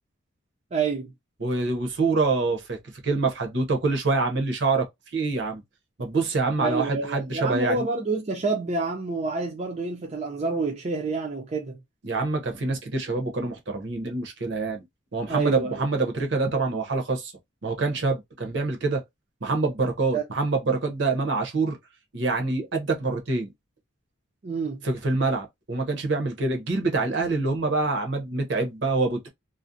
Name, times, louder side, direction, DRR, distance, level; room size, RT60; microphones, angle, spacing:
voice 1, 0.7-1.1 6.6-11.8 15.3-15.8 20.1-20.2 24.4-24.8, right 4 dB, 35° right, 0.4 m, -28 dB
voice 2, 1.4-2.8 3.0-4.9 5.1-5.6 6.0-7.9 12.0-14.8 15.1-17.3 17.6-19.0 19.4-21.8 22.1-23.5 24.8-29.3, right 3 dB, 60° right, 0.7 m, -26 dB
2.4 x 2.0 x 2.5 m
head